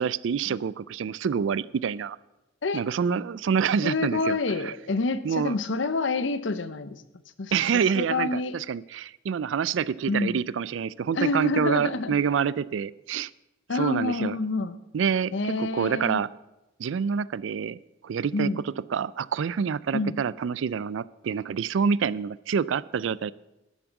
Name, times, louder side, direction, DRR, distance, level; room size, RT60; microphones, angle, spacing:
voice 1, 0.0-2.2 2.7-4.4 5.2-5.6 7.5-13.3 13.7-14.4 14.9-15.3 15.6-16.3 16.8-17.8 18.0-18.5 18.9-23.3, right 6 dB, 75° right, 20 dB, 0.4 m, -27 dB
voice 2, 3.8-7.0 7.4-8.6 10.1-10.4 11.1-12.2 13.7-14.8 15.3-16.2 18.3-18.6 19.9-20.2, left 3 dB, 70° left, 13 dB, 0.8 m, -28 dB
11.5 x 7.3 x 7.1 m, 0.97 s
head